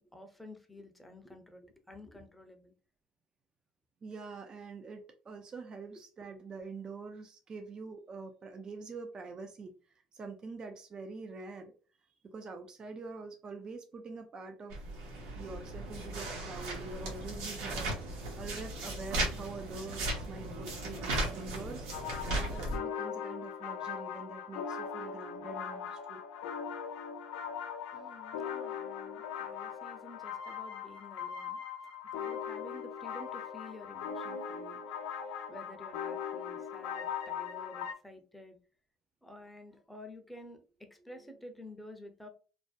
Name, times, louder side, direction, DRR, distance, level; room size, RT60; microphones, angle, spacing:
voice 1, 0.0-2.7 27.9-31.6 32.1-34.8 35.1-38.6 39.2-42.3, left 1 dB, 5° left, 5 dB, 0.6 m, -51 dB
voice 2, 4.0-9.7 10.1-11.7 12.2-14.8 15.4-17.9 18.4-21.9 22.3-26.2, right 4 dB, 35° right, 6 dB, 0.4 m, -45 dB
sound 1, 14.7-22.8, right 1 dB, 80° right, 0.8 m, -37 dB
sound 2, 21.9-37.9, left 7 dB, 85° left, 0.4 m, -40 dB
2.5 x 2.1 x 2.3 m, 0.36 s
supercardioid pair, 80°, 2 cm